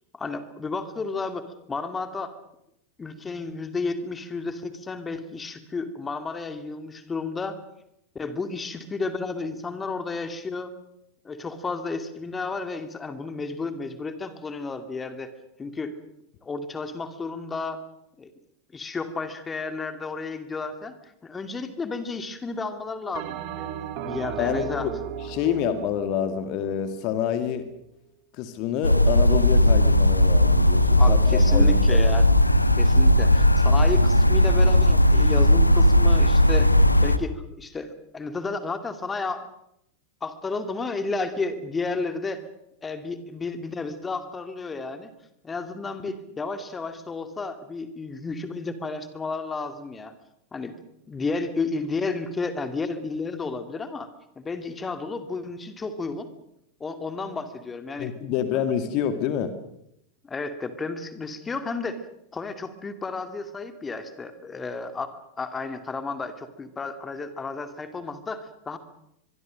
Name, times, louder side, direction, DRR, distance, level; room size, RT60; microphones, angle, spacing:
voice 1, 0.1-2.3 3.0-7.6 8.1-10.7 11.2-15.3 15.6-15.9 16.4-17.8 18.2-18.3 18.7-23.7 24.0-24.9 31.0-32.3 32.8-36.7 37.0-39.5 40.2-42.4 42.8-45.1 45.4-50.1 50.5-50.8 51.1-54.1 54.4-56.3 56.8-58.1 60.2-62.0 62.3-65.1 65.4-68.8, left 3 dB, 15° left, 9 dB, 2.4 m, -32 dB
Bell, 23.1-27.7, right 9 dB, 45° right, 2.5 m, -36 dB
voice 2, 24.4-24.9 25.2-27.7 28.3-32.0 58.0-59.5, left 9 dB, 40° left, 10 dB, 2.1 m, -27 dB
sound 1, 28.8-37.2, left 1 dB, 85° left, 1.1 m, -17 dB
25.0 x 23.0 x 6.5 m, 0.80 s
figure-of-eight pair, 90°, 0 cm